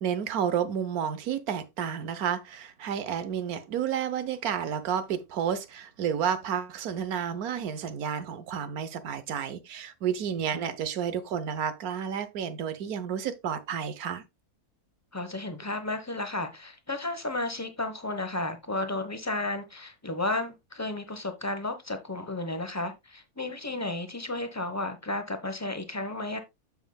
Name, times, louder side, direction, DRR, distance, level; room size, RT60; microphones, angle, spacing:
voice 1, 0.0-14.2, right 8 dB, 80° right, 1.3 m, -31 dB
voice 2, 15.1-26.4, left 2 dB, 15° left, 0.8 m, -33 dB
8.9 x 7.2 x 2.3 m
omnidirectional pair, 1.6 m